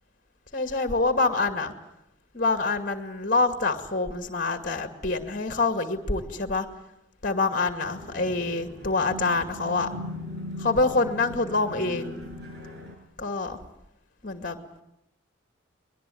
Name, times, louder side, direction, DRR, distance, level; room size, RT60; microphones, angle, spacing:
voice 1, 0.5-1.7 2.3-6.7 7.2-9.9 10.6-12.2 13.2-13.6 14.2-14.6, left 3 dB, 40° left, 7 dB, 2.3 m, -26 dB
sound 1, 7.9-12.9, left 1 dB, 50° right, 6.5 m, -39 dB
23.0 x 21.5 x 9.4 m, 0.83 s
head